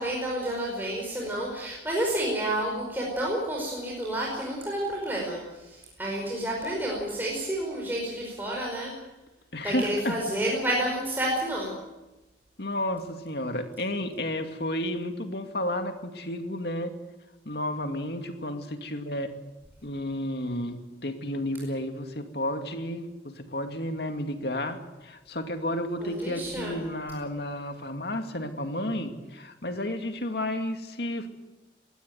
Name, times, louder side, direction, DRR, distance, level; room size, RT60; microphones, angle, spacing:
voice 1, 0.0-8.9 9.6-11.7 26.0-26.8, right 1 dB, 10° right, -3 dB, 5.3 m, -30 dB
voice 2, 9.5-10.2 12.6-16.9 17.5-19.3 19.8-31.3, left 1 dB, 60° left, 6 dB, 2.4 m, -32 dB
21.5 x 17.0 x 9.5 m, 1.0 s
head